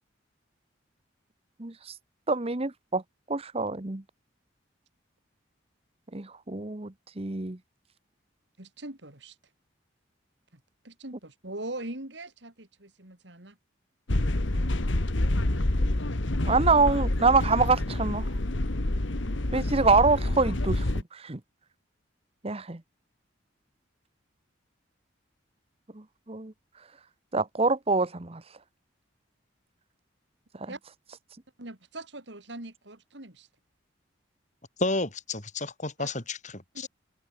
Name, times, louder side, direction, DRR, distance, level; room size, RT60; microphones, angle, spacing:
voice 1, 2.3-3.0 3.3-4.0 6.1-7.6 16.5-18.3 19.5-21.4 22.4-22.8 25.9-26.5 27.3-28.4 30.6-30.7, right 3 dB, 30° right, 1.0 m, -25 dB
voice 2, 8.6-9.4 10.5-13.6 16.4-16.6 30.7-30.8 31.6-33.5 36.0-36.1 36.7-36.9, right 2 dB, 65° right, 3.8 m, -41 dB
sound 1, 14.1-21.0, left 1 dB, 75° left, 1.7 m, -27 dB
voice 3, 34.8-36.9, left 2 dB, 40° left, 4.9 m, -31 dB
head